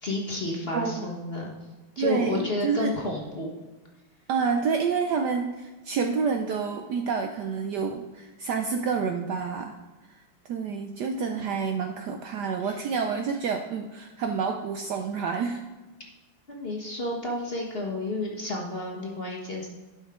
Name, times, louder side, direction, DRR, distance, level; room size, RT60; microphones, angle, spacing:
voice 1, 0.0-1.5 2.0-3.5 12.6-12.8 16.5-19.7, left 2 dB, 35° left, -1 dB, 1.2 m, -31 dB
voice 2, 0.7-1.1 2.0-3.0 4.3-9.8 10.1-10.2 10.5-15.6, right 5 dB, 70° right, 5 dB, 1.0 m, -28 dB
11.5 x 5.7 x 3.6 m, 1.2 s
omnidirectional pair, 2.2 m